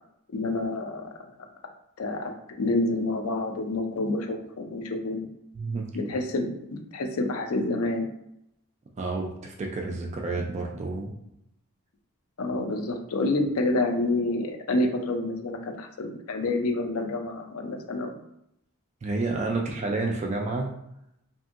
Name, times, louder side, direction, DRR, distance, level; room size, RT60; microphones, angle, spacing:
voice 1, 0.3-1.1 2.0-5.3 5.9-8.1 12.4-18.2, left 2 dB, 65° left, 4 dB, 0.4 m, -28 dB
voice 2, 5.6-5.9 9.0-11.1 19.0-20.7, right 3 dB, 30° right, 1 dB, 0.3 m, -30 dB
2.6 x 2.6 x 2.4 m, 0.81 s
head